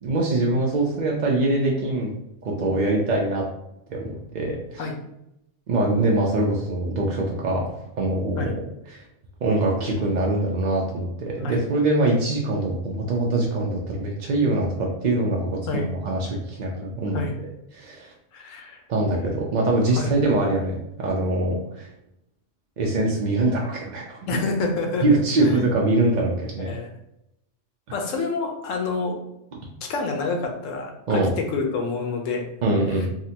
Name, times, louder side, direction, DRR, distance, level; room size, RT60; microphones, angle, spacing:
voice 1, 0.0-2.1 2.6-3.4 3.9-4.8 5.7-7.7 8.0-8.5 8.9-9.0 9.4-17.2 17.7-18.1 18.9-21.9 22.8-24.2 25.0-26.8 31.1-31.3 32.6-33.1, right 2 dB, 60° right, -2 dB, 0.5 m, -23 dB
voice 2, 18.3-18.8 20.0-20.1 24.3-25.5 26.6-26.9 27.9-29.2 29.9-32.4 33.0-33.1, left 3 dB, 85° left, 3 dB, 1.0 m, -28 dB
3.7 x 2.1 x 2.8 m, 0.83 s
omnidirectional pair, 1.3 m